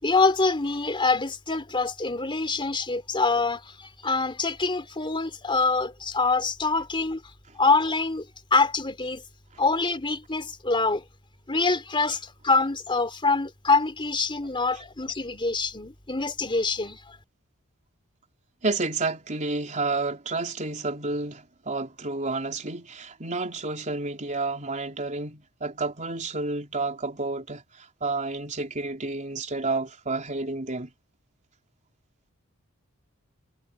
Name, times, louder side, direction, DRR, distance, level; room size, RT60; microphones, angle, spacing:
voice 1, 0.0-7.2 7.5-9.2 9.6-11.0 11.5-17.2, left 3 dB, 25° left, 3.2 m, -25 dB
voice 2, 18.6-30.9, right 3 dB, 35° right, 4.1 m, -30 dB
head